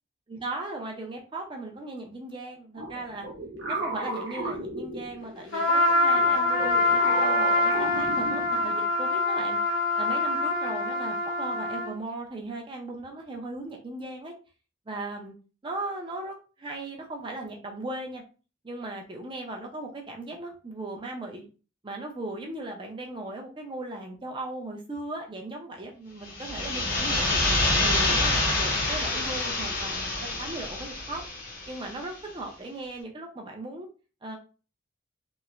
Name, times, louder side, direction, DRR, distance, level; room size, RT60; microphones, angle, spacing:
voice 1, 0.3-3.3 3.7-9.6 10.0-14.3 14.9-15.3 15.6-18.2 18.6-21.5 21.8-27.4 27.8-31.2 31.7-33.9 34.2-34.4, right 2 dB, 25° right, 1 dB, 0.4 m, -37 dB
sound 1, 2.8-5.5 6.1-8.8, right 1 dB, 60° right, 0.7 m, -35 dB
Trumpet, 5.5-12.0, left 2 dB, 85° left, 1.0 m, -24 dB
sound 2, 26.3-31.9, left 2 dB, 45° left, 0.7 m, -27 dB
3.0 x 2.1 x 2.4 m, 0.35 s
head